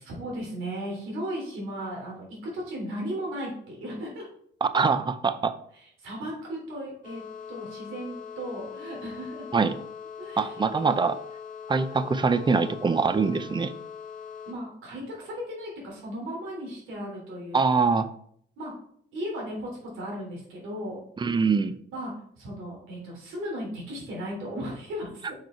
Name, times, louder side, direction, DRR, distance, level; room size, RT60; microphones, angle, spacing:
voice 1, 0.0-4.3 5.7-7.2 7.5-9.5 10.2-10.8 14.5-17.6 18.6-18.7 19.1-21.0 21.9-25.4, equal, 85° right, -2 dB, 3.4 m, -36 dB
voice 2, 4.6-5.5 9.5-9.7 10.4-11.2 11.7-13.7 17.5-18.1 21.2-21.7, right 4 dB, 25° right, 12 dB, 0.6 m, -23 dB
sound 1, 7.0-14.5, left 7 dB, 40° left, 1.9 m, -41 dB
6.1 x 5.1 x 4.5 m, 0.63 s
cardioid pair, 90°, 20 cm